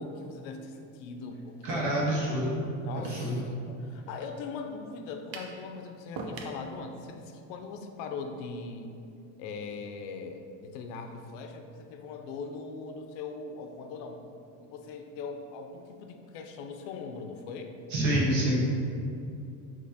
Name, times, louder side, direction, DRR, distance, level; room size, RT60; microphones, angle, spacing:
voice 1, 0.0-2.0 2.8-8.9 9.4-14.2 14.6-17.8, left 4 dB, 70° left, 5 dB, 0.5 m, -40 dB
voice 2, 1.6-2.6 2.9-3.3 17.9-18.7, right 1 dB, 50° right, -5 dB, 1.3 m, -27 dB
sound 1, 5.3-5.6 6.2-6.6, right 3 dB, 80° right, 0.7 m, -38 dB
6.1 x 3.0 x 2.7 m, 2.6 s
cardioid pair, 170°, 38 cm